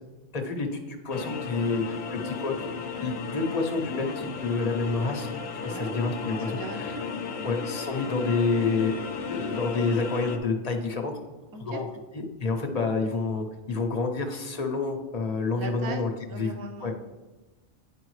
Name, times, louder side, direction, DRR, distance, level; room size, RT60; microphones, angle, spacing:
voice 1, 0.3-2.7 3.0-5.3 5.6-7.0 7.4-9.0 9.3-11.1 11.6-11.9 12.1-16.5 16.8-16.9, left 4 dB, 40° left, 3 dB, 0.8 m, -28 dB
sound 1, 1.1-10.4, left 5 dB, 65° left, 0.9 m, -35 dB
voice 2, 5.6-7.4 11.5-11.8 15.6-16.9, right 2 dB, 30° right, 4 dB, 0.4 m, -39 dB
9.2 x 5.0 x 3.2 m, 1.1 s
omnidirectional pair, 1.2 m